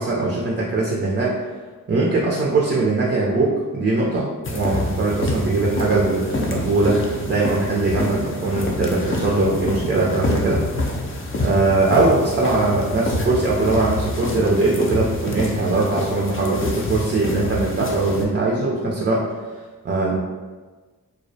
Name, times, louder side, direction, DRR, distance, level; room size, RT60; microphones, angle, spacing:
voice 1, 0.0-1.4 1.9-10.6 11.4-19.2 19.8-20.2, right 3 dB, 35° right, -3 dB, 0.4 m, -21 dB
sound 1, 4.4-18.2, left 1 dB, 40° left, 0.4 m, -27 dB
2.3 x 2.0 x 2.6 m, 1.3 s
cardioid pair, 55°, 33 cm